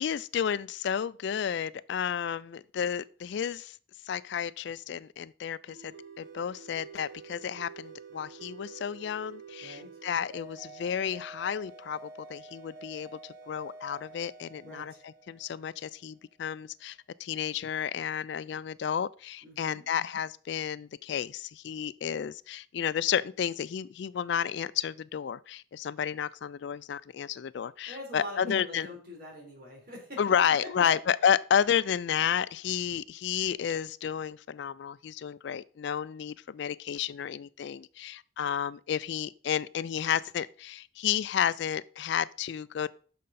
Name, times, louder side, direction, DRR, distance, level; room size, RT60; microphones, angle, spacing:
voice 1, 0.0-3.8 4.0-14.9 15.3-28.9 30.2-42.9, left 8 dB, 60° left, 0.3 m, -31 dB
sound 1, 5.7-16.0, right 4 dB, 70° right, 1.7 m, -49 dB
voice 2, 14.6-15.0 19.4-19.9 27.9-31.0, left 1 dB, 45° right, 3.7 m, -43 dB
9.4 x 6.5 x 4.1 m
head